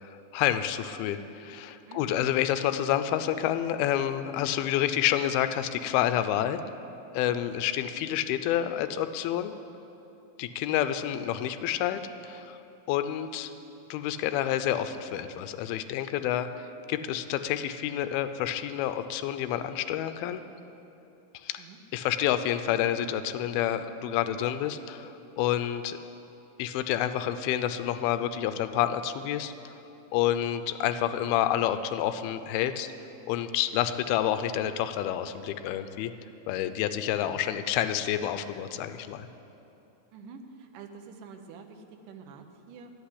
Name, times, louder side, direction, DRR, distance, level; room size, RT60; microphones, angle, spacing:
voice 1, 0.0-6.6 7.1-9.5 10.4-12.6 12.9-13.5 13.9-20.4 21.3-21.6 21.9-26.0 26.6-29.7 30.1-32.9 33.3-36.1 36.5-39.3, left 11 dB, 90° left, 10 dB, 2.5 m, -29 dB
voice 2, 1.9-2.3 21.6-21.8 37.3-37.4 40.1-42.9, right 5 dB, 70° right, 5 dB, 2.2 m, -47 dB
12.0 x 8.2 x 10.0 m, 3.0 s
omnidirectional pair, 4.3 m